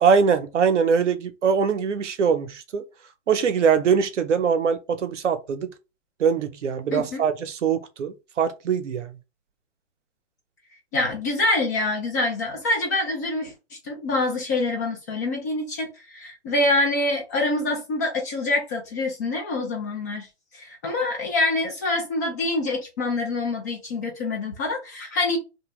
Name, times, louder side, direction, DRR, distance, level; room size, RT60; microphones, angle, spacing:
voice 1, 0.0-2.8 3.3-5.7 6.2-9.1, right 6 dB, 85° right, 0.6 m, -22 dB
voice 2, 6.9-7.2 10.9-20.3 20.6-25.4, left 2 dB, 15° left, 0.3 m, -26 dB
2.7 x 2.1 x 3.0 m
hypercardioid pair, 130°, 35 cm